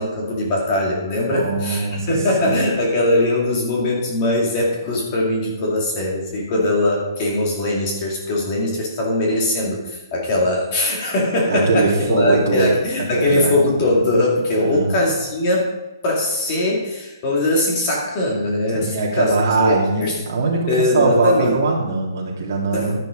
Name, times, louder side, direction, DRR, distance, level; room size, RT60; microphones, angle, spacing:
voice 1, 0.0-15.7 16.0-20.2 20.7-21.6 22.7-23.0, left 1 dB, 20° left, -2 dB, 2.4 m, -21 dB
voice 2, 1.3-2.2 2.4-2.5 11.4-12.7 13.1-13.6 14.6-15.0 18.7-23.0, right 3 dB, 40° right, -3 dB, 3.3 m, -21 dB
11.5 x 10.5 x 5.2 m, 1.1 s
hypercardioid pair, 175°, 2 cm